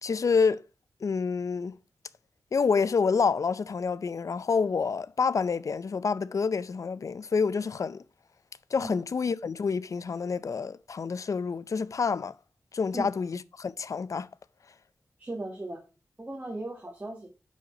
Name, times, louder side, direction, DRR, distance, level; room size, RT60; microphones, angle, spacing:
voice 1, 0.0-0.6 1.0-1.7 2.5-8.0 8.7-12.3 12.7-14.3, left 5 dB, 60° left, 0.5 m, -28 dB
voice 2, 15.2-15.8 16.2-17.3, right 2 dB, 25° right, 2.0 m, -37 dB
6.2 x 5.5 x 5.8 m
cardioid pair, 60°, 6 cm